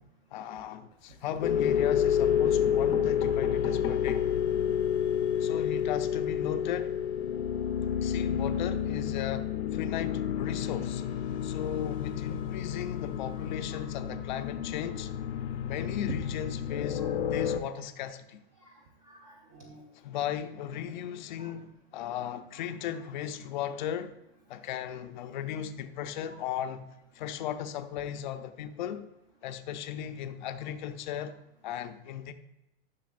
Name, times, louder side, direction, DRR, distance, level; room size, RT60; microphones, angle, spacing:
voice 1, 0.3-4.2 5.4-6.9 8.0-9.5 9.7-11.0 11.4-15.1 15.6-18.4 19.9-24.2 24.5-26.9 27.1-29.1 29.4-31.4 31.6-32.3, left 9 dB, 50° left, 0.6 m, -36 dB
sound 1, 0.9-1.5 2.3-2.4 2.6-4.4 4.9-5.0 5.2-5.3 5.6-5.8, left 4 dB, 15° left, 0.7 m, -40 dB
sound 2, 1.4-17.6, left 9 dB, 80° left, 0.8 m, -29 dB
voice 2, 13.7-14.2 17.0-17.2 18.6-19.8 21.4-21.5 22.6-22.7 26.3-26.4, right 2 dB, 25° right, 0.7 m, -52 dB
10.5 x 6.3 x 2.5 m
supercardioid pair, 165°, 32 cm